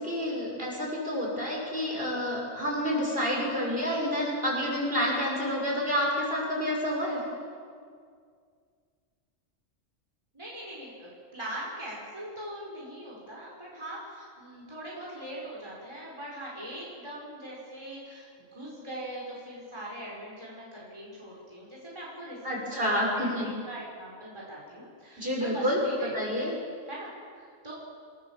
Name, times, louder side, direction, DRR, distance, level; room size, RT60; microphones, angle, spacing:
voice 1, 0.0-7.2 22.4-23.5 25.2-25.8 26.1-26.5, equal, 45° right, -2 dB, 6.9 m, -29 dB
voice 2, 10.3-26.4 26.9-27.7, right 1 dB, 20° right, -5 dB, 5.2 m, -41 dB
28.5 x 20.5 x 7.4 m, 2.1 s
omnidirectional pair, 1.3 m